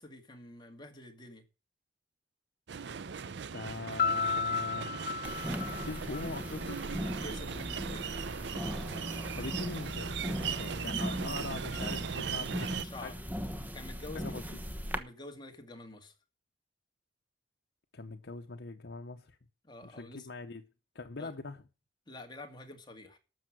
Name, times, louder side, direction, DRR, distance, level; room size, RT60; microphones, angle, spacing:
voice 1, 0.0-1.4 7.2-8.2 11.0-11.4 12.4-13.1 13.7-14.6 14.9-16.1 19.6-20.3 21.2-21.3 22.1-23.2, left 2 dB, 25° left, 2.1 m, -48 dB
sound 1, 2.7-12.8, right 6 dB, 70° right, 0.6 m, -39 dB
voice 2, 3.5-5.2 5.8-6.9 9.3-12.8 13.0-13.1 14.1-14.4 17.9-19.4 19.8-20.6 20.9-21.6, left 3 dB, 70° left, 0.9 m, -42 dB
Piano, 4.0-6.8, left 6 dB, 50° left, 0.6 m, -33 dB
sound 2, 5.2-15.0, equal, 10° right, 1.1 m, -39 dB
12.5 x 6.9 x 6.2 m
head